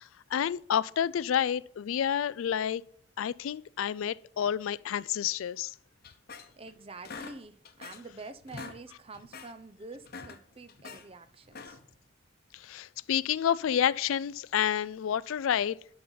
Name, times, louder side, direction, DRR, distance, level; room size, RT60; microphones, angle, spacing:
voice 1, 0.0-2.8 3.2-5.7 12.5-15.8, left 9 dB, 75° left, 0.3 m, -29 dB
sound 1, 6.0-6.7 7.0-8.1 8.4-8.8 9.1-9.5 9.9-11.0 11.5-12.0, left 4 dB, 45° left, 0.9 m, -45 dB
voice 2, 6.6-11.8, right 3 dB, 30° right, 0.6 m, -47 dB
11.5 x 5.5 x 3.9 m
head